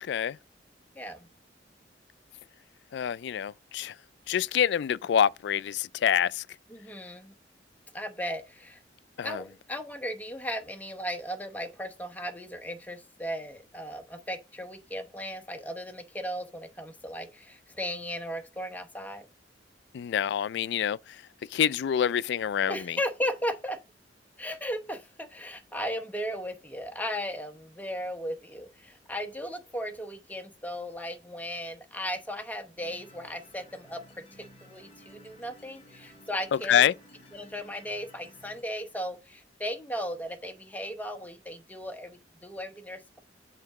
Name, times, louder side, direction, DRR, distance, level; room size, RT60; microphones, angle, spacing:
voice 1, 0.0-0.4 2.9-3.9 4.3-6.4 9.2-9.4 19.9-21.0 21.5-23.0 36.7-36.9, left 9 dB, 65° left, 0.3 m, -26 dB
voice 2, 0.9-1.3 6.7-7.3 7.9-8.8 9.2-19.3 22.7-23.8 24.4-34.0 34.3-36.9 37.3-43.2, equal, 10° left, 0.9 m, -36 dB
sound 1, 32.8-38.6, equal, 35° left, 2.5 m, -55 dB
7.8 x 3.9 x 4.7 m
head